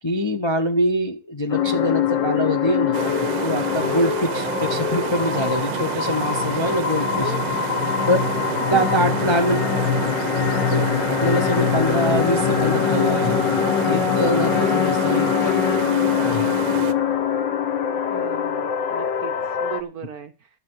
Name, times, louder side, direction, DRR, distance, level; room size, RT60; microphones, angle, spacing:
voice 1, 0.0-7.3 8.1-8.2 8.7-9.6 10.7-15.5 16.2-16.5, equal, 25° left, 4 dB, 0.6 m, -24 dB
sound 1, 1.5-19.8, left 8 dB, 65° left, 1.7 m, -23 dB
sound 2, 2.9-16.9, right 11 dB, 80° right, 1.6 m, -29 dB
voice 2, 7.2-7.5 8.7-9.6 14.6-15.1 18.1-20.5, right 8 dB, 60° right, 8 dB, 1.0 m, -36 dB
12.0 x 7.6 x 6.4 m, 0.32 s
omnidirectional pair, 2.2 m